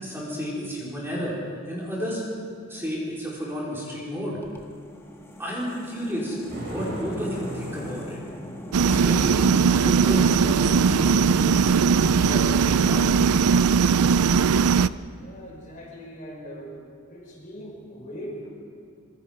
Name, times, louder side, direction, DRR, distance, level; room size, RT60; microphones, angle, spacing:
voice 1, 0.0-1.3 1.7-2.2 2.7-4.4 5.4-6.4 6.7-8.2 8.8-11.7 12.2-13.1, equal, 10° right, -6 dB, 4.6 m, -32 dB
sound 1, 4.4-15.5, equal, 10° left, 1.6 m, -42 dB
Thunder, 6.5-9.0, equal, 45° right, 6.3 m, -36 dB
sound 2, 8.7-14.9, right 6 dB, 85° right, 0.5 m, -19 dB
voice 2, 15.2-16.7 17.1-18.5, equal, 35° left, -2 dB, 5.3 m, -40 dB
26.0 x 23.0 x 5.2 m, 2.1 s
head